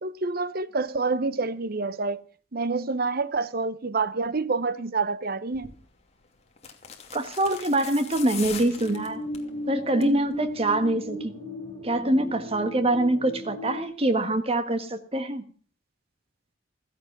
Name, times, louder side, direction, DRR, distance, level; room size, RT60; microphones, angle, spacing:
voice 1, 0.0-2.2 2.5-5.7, right 4 dB, 50° right, 0.9 m, -27 dB
sound 1, 5.5-5.8 6.6-9.5 9.9-10.2 10.5-10.6, left 7 dB, 35° left, 2.6 m, -40 dB
voice 2, 7.1-9.2 9.7-11.3 11.8-15.4, right 1 dB, 30° right, 1.5 m, -24 dB
sound 2, 8.8-13.8, left 1 dB, 75° right, 7.5 m, -36 dB
15.5 x 15.0 x 6.0 m
head